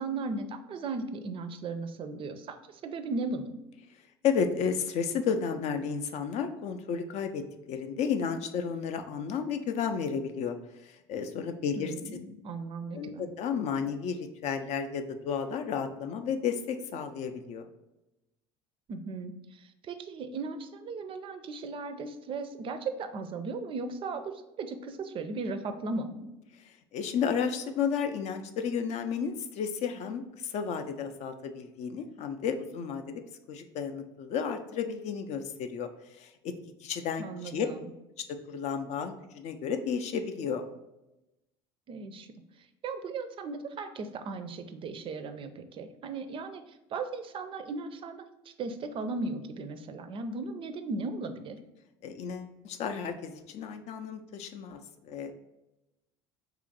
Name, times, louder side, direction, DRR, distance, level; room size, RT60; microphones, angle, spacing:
voice 1, 0.0-3.6 11.8-13.3 18.9-24.3 24.6-26.3 37.2-37.9 41.9-42.3 42.8-46.6 46.9-48.3 48.6-51.6, right 3 dB, 40° right, 8 dB, 0.4 m, -37 dB
voice 2, 4.2-10.5 10.8-11.9 12.9-17.7 26.6-33.2 33.5-36.5 36.8-37.7 38.5-40.6 52.0-55.3, left 6 dB, 55° left, 7 dB, 0.4 m, -32 dB
2.8 x 2.4 x 3.9 m, 0.95 s
supercardioid pair, 80°, 14 cm